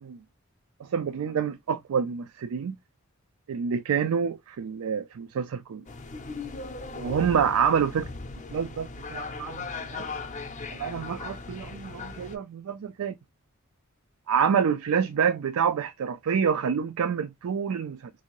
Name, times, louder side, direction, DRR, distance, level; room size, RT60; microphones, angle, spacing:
voice 1, 0.8-2.8 3.5-5.8 6.9-8.1 8.5-10.0 10.7-13.1 14.3-18.1, right 7 dB, 85° right, 0.4 m, -27 dB
sound 1, 5.9-12.4, left 3 dB, 35° left, 0.5 m, -38 dB
3.6 x 2.6 x 2.9 m
head